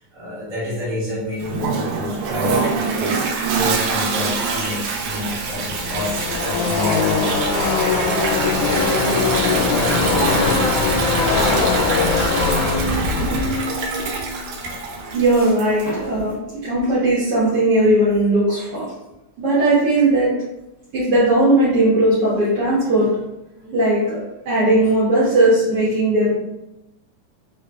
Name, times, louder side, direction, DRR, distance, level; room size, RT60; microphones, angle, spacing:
voice 1, 0.0-7.3 14.0-14.8 15.1-15.5 23.6-23.8 24.8-24.9, left 2 dB, 45° right, -9 dB, 0.8 m, -29 dB
Toilet flush, 1.4-16.0, right 5 dB, 90° right, 2.1 m, -25 dB
Car passing by / Race car auto racing, 5.0-15.6, left 4 dB, 90° left, 2.1 m, -21 dB
voice 2, 15.1-18.8 19.4-20.3 20.9-23.1 23.7-24.2 24.4-26.3, right 1 dB, 70° right, -8 dB, 1.4 m, -17 dB
4.9 x 2.1 x 2.2 m, 0.93 s
omnidirectional pair, 3.5 m